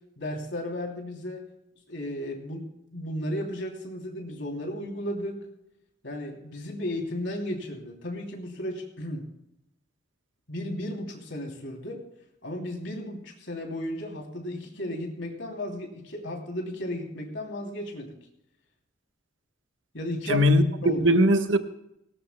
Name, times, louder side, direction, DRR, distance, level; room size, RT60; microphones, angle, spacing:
voice 1, 0.2-1.5 1.9-2.7 2.9-5.4 6.0-9.2 10.5-12.0 12.4-18.1 19.9-20.5 20.8-21.2, left 1 dB, 70° left, 1 dB, 3.0 m, -34 dB
voice 2, 20.3-21.6, equal, 85° right, 7 dB, 1.2 m, -20 dB
18.5 x 18.5 x 2.2 m, 0.80 s
head